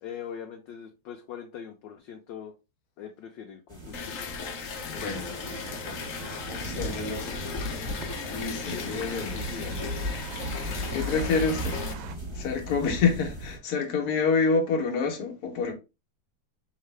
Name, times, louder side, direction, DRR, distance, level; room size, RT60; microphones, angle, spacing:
voice 1, 0.0-2.5 3.0-4.3 4.9-6.4 6.7-6.9 7.3-7.6 8.7-8.8 9.3-10.0 10.9-11.2, left 8 dB, 70° left, 1.2 m, -43 dB
sound 1, 3.7-13.6, equal, 15° right, 1.2 m, -37 dB
sound 2, 3.9-11.9, left 6 dB, 85° left, 0.7 m, -37 dB
sound 3, 4.9-12.2, right 8 dB, 75° right, 1.2 m, -43 dB
voice 2, 5.0-5.4 6.6-7.5 8.3-9.5 10.9-11.8 12.3-15.7, left 5 dB, 55° left, 1.3 m, -27 dB
4.6 x 3.3 x 3.3 m
omnidirectional pair, 2.4 m